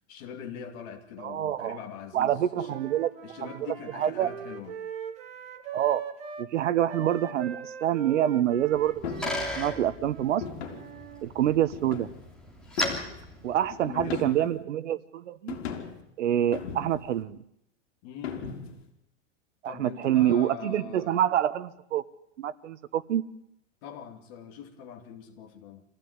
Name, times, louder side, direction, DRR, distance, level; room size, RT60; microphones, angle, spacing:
voice 1, 0.0-2.8 3.2-4.8 13.7-14.5 18.0-18.5 19.6-21.3 23.8-25.8, left 8 dB, 30° left, 5 dB, 2.6 m, -42 dB
voice 2, 1.2-1.8 2.1-3.1 3.4-3.5 4.0-4.3 5.7-6.0 6.4-8.9 9.6-10.4 11.2-12.1 13.4-15.6 16.2-17.4 19.6-22.0 22.4-23.2, right 11 dB, 65° right, 15 dB, 1.3 m, -26 dB
Wind instrument woodwind instrument, 2.6-6.5 6.9-11.2, right 7 dB, 15° right, 1.3 m, -41 dB
Bicycle, 8.6-14.3, left 1 dB, ahead, 3.2 m, -37 dB
sound 1, 9.0-9.5 10.4-10.9 11.7-12.3 12.8-13.2 14.0-14.6 15.5-16.0 16.5-17.1 18.2-18.8, left 7 dB, 55° left, 4.6 m, -37 dB
26.0 x 16.0 x 9.7 m, 0.80 s
supercardioid pair, 170°, 39 cm